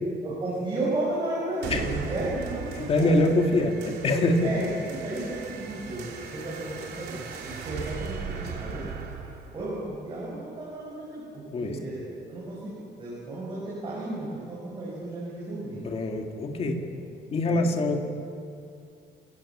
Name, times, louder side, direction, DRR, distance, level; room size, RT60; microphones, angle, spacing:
voice 1, 0.2-3.2 4.4-6.0 6.3-8.3 8.6-8.8 9.5-15.8 16.8-16.9 17.4-18.0, right 2 dB, 25° right, -7 dB, 6.8 m, -33 dB
sound 1, 1.6-10.6, right 5 dB, 60° right, 3.2 m, -38 dB
voice 2, 2.8-4.5 11.5-11.8 15.8-16.8 17.3-18.0, left 2 dB, 30° left, 2 dB, 2.3 m, -24 dB
29.0 x 18.5 x 7.5 m, 2.5 s
cardioid pair, 175°, 18 cm